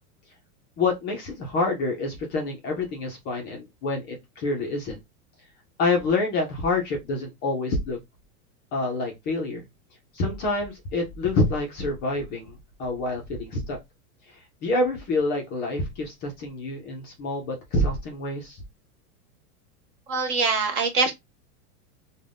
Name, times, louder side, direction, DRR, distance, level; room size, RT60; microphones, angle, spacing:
voice 1, 0.8-5.0 5.8-8.0 8.7-9.6 10.1-13.8 14.3-18.6, left 2 dB, 25° left, 0.4 m, -27 dB
voice 2, 20.1-21.1, right 4 dB, 25° right, 0.5 m, -23 dB
2.5 x 2.2 x 3.3 m
supercardioid pair, 150°, 44 cm